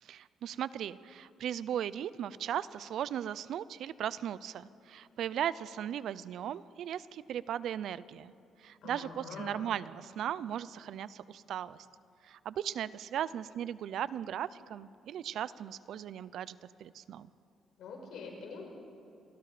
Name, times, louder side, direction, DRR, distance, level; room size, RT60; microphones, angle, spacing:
voice 1, 0.0-8.3 8.6-11.9 12.2-17.3, right 10 dB, 75° right, 17 dB, 0.6 m, -37 dB
voice 2, 8.8-9.6 17.8-18.6, left 4 dB, 80° left, 1 dB, 5.9 m, -44 dB
28.0 x 22.0 x 5.1 m, 2.7 s
cardioid pair, 90°, 0 cm